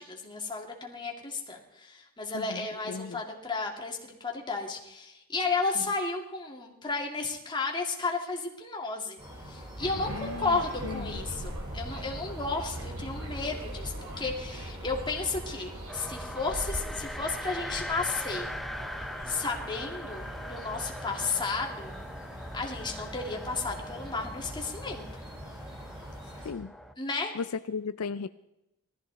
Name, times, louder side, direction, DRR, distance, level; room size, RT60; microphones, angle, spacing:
voice 1, 0.0-9.2 9.4-18.5 19.3-21.9 22.5-25.1 27.0-27.3, left 3 dB, 20° left, 1 dB, 2.3 m, -33 dB
voice 2, 2.3-3.2 5.8-5.9 10.1-11.2 26.4-26.7 27.3-28.3, left 5 dB, 70° left, 13 dB, 0.4 m, -36 dB
sound 1, 9.2-26.5, equal, 20° right, 4.5 m, -45 dB
sound 2, 9.8-21.4, right 1 dB, 70° right, 2.5 m, -41 dB
sound 3, 15.9-26.9, equal, ahead, 0.6 m, -41 dB
19.5 x 13.5 x 4.0 m, 0.90 s
head